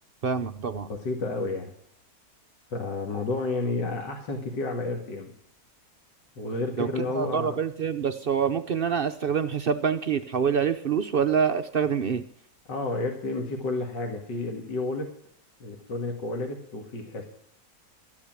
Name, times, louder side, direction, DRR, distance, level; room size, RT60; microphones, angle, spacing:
voice 1, 0.2-0.9 6.8-12.2, right 7 dB, 70° right, 9 dB, 0.5 m, -26 dB
voice 2, 0.9-1.7 2.7-5.3 6.4-7.6 12.7-15.1 15.6-17.2, left 2 dB, 80° left, 2 dB, 2.4 m, -31 dB
13.0 x 10.0 x 7.4 m, 0.63 s
omnidirectional pair, 1.9 m